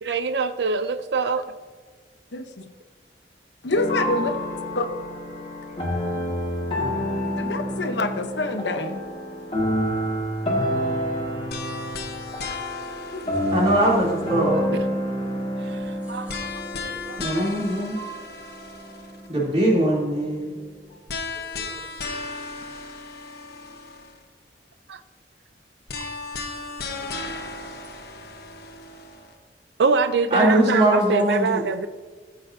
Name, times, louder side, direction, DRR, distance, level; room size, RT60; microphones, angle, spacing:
voice 1, 0.0-1.4 14.7-14.8 15.6-16.5 16.8-17.5 24.9-25.0 26.0-26.1 27.0-27.1 29.8-31.9, right 4 dB, 75° right, 11 dB, 0.4 m, -25 dB
voice 2, 2.3-2.7 3.6-4.3 4.7-4.9 7.4-9.0 13.1-13.3, left 2 dB, 85° left, 7 dB, 0.8 m, -26 dB
sound 1, 3.7-19.9, equal, 30° left, 1.8 m, -29 dB
voice 3, 5.3-5.8 16.0-16.9 21.5-22.2, equal, 10° right, -4 dB, 2.4 m, -49 dB
sound 2, 11.5-14.6 16.3-19.3 21.1-24.2 25.9-29.3, left 4 dB, 60° left, 1.1 m, -36 dB
voice 4, 13.5-14.8 17.2-18.0 19.3-20.5 30.3-31.6, right 1 dB, 35° right, -4 dB, 2.9 m, -21 dB
15.5 x 8.1 x 2.7 m, 1.5 s
head